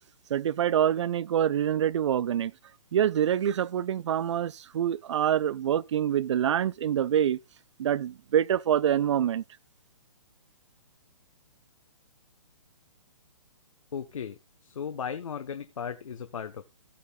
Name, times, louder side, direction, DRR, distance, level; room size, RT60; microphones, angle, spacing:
voice 1, 0.3-2.5 2.9-7.4 7.8-9.4, right 10 dB, 60° right, 0.5 m, -26 dB
voice 2, 13.9-16.6, left 7 dB, 70° left, 1.1 m, -36 dB
17.0 x 6.7 x 2.4 m
hypercardioid pair, 140°, 17 cm